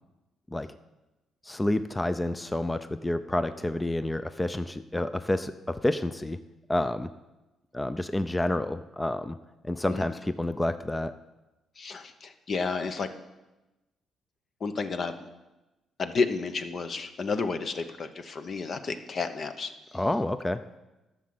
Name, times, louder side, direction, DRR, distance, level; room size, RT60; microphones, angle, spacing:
voice 1, 1.5-5.5 5.8-6.4 6.7-7.1 7.7-9.4 9.6-11.1 19.9-20.6, left 1 dB, 15° left, 12 dB, 0.5 m, -29 dB
voice 2, 11.8-13.1 14.6-15.1 16.0-19.7, left 4 dB, 50° left, 9 dB, 1.0 m, -31 dB
12.0 x 6.5 x 7.8 m, 1.1 s
cardioid pair, 90°, 0 cm